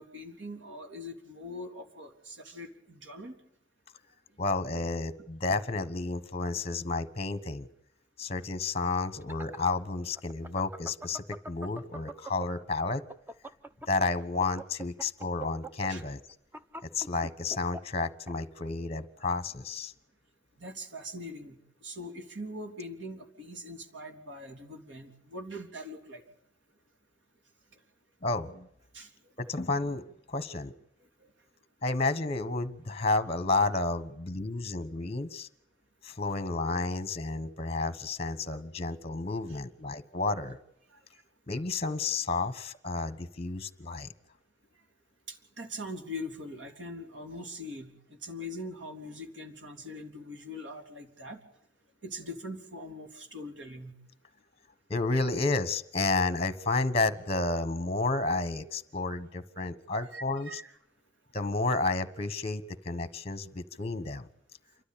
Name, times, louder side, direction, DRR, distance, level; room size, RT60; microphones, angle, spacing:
voice 1, 0.0-3.4 15.9-16.0 20.6-26.3 28.9-29.1 31.2-31.3 39.5-39.6 40.9-41.0 45.3-51.4 52.0-53.9 60.0-60.7, left 1 dB, 85° right, 5 dB, 3.6 m, -42 dB
voice 2, 4.4-7.7 8.2-13.0 13.9-16.2 16.9-19.9 28.2-28.7 29.4-30.7 31.8-35.5 36.0-40.6 41.5-44.1 54.9-60.6 61.3-64.3, left 3 dB, 35° left, 13 dB, 1.2 m, -31 dB
sound 1, 9.0-12.6 13.0-18.3, right 1 dB, 10° right, 0.9 m, -43 dB
28.0 x 13.0 x 8.6 m, 0.76 s
head